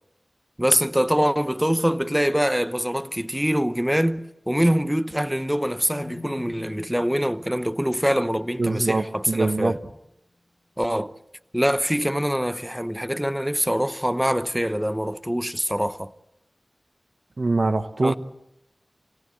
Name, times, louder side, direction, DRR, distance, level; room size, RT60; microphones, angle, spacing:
voice 1, 0.6-9.8 10.8-11.1 11.5-16.1 18.0-18.1, equal, 5° right, 0.9 m, -24 dB
sound 1, 5.9-9.9, left 3 dB, 75° left, 2.3 m, -46 dB
voice 2, 8.6-9.8 17.4-18.2, right 3 dB, 70° right, 1.2 m, -23 dB
28.5 x 17.5 x 7.8 m
wide cardioid pair, 45°, 0 cm